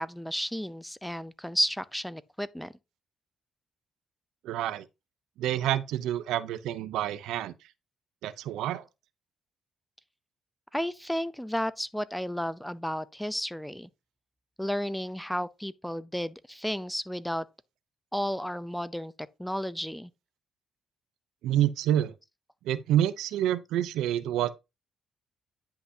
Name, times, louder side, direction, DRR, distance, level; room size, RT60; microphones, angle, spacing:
voice 1, 0.0-2.7 10.7-13.9 14.6-17.4 18.1-20.1, equal, 5° left, 0.6 m, -32 dB
voice 2, 4.4-4.8 5.4-7.5 8.2-8.8 21.4-22.1 22.6-24.5, right 11 dB, 90° right, 0.6 m, -28 dB
9.9 x 5.8 x 2.8 m
cardioid pair, 90°, 0 cm